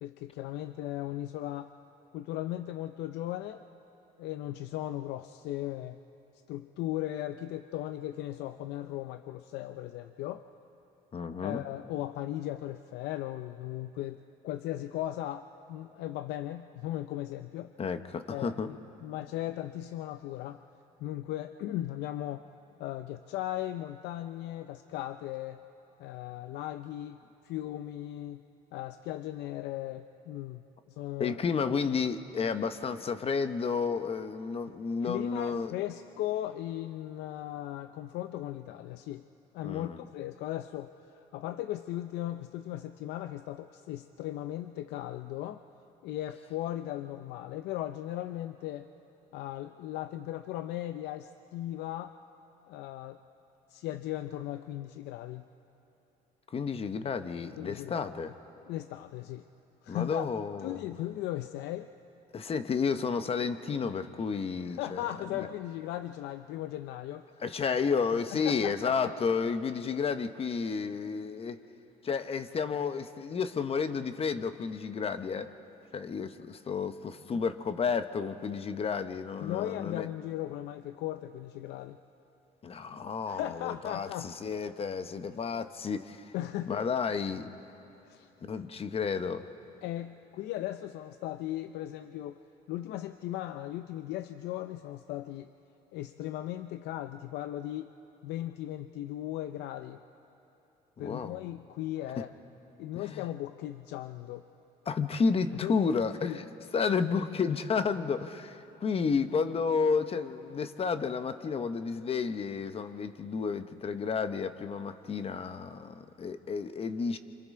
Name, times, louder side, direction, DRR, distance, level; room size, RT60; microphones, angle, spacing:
voice 1, 0.0-1.7 2.1-3.6 4.2-6.0 6.5-10.4 11.4-17.7 18.3-20.6 21.0-22.5 22.8-25.6 26.0-27.2 27.4-28.4 28.7-31.4 35.0-39.2 39.5-45.6 46.0-48.9 49.3-52.1 52.7-53.2 53.7-55.5 57.6-58.2 58.7-59.4 59.8-60.3 60.6-61.9 64.6-67.3 68.3-69.1 79.4-82.0 83.3-84.3 86.3-86.8 88.1-88.3 89.8-92.4 92.7-95.5 95.9-97.9 98.2-100.0 101.0-102.3 102.8-104.4 105.6-105.8 106.2-106.4, left 13 dB, 85° left, 9 dB, 0.5 m, -37 dB
voice 2, 11.1-11.6 17.8-18.7 31.2-35.7 39.6-40.1 56.5-58.3 59.9-60.8 62.3-65.0 65.3-65.5 67.4-71.6 72.0-75.5 75.9-80.1 82.6-86.3 86.7-87.5 88.5-89.4 101.0-101.4 103.1-103.2 104.9-106.4 106.7-117.2, left 5 dB, 35° left, 10 dB, 0.9 m, -31 dB
28.0 x 26.0 x 3.7 m, 2.9 s
cardioid pair, 110°, 17 cm